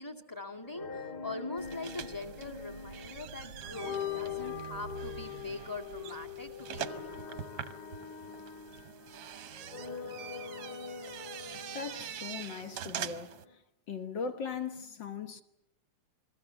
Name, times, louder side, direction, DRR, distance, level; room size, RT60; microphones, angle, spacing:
voice 1, 0.0-7.4, left 2 dB, 10° left, 1.5 m, -43 dB
sound 1, 0.6-13.6, left 7 dB, 30° left, 2.6 m, -43 dB
sound 2, 1.6-13.4, right 9 dB, 65° right, 1.6 m, -44 dB
voice 2, 11.7-13.4 13.9-15.4, left 5 dB, 60° left, 1.2 m, -39 dB
29.0 x 22.0 x 7.0 m
omnidirectional pair, 3.7 m